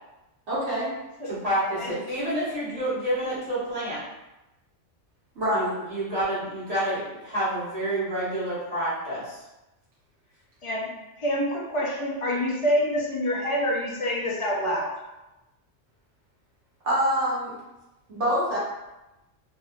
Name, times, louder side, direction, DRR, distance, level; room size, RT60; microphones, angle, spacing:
voice 1, 0.5-0.9 5.3-5.8 16.8-17.5 18.1-18.6, equal, 65° right, -7 dB, 1.3 m, -25 dB
voice 2, 1.2-4.0 5.5-9.4, right 1 dB, 30° right, -11 dB, 1.5 m, -28 dB
voice 3, 11.2-14.9, equal, 40° left, -3 dB, 0.5 m, -26 dB
3.5 x 2.7 x 2.5 m, 1.0 s
omnidirectional pair, 1.3 m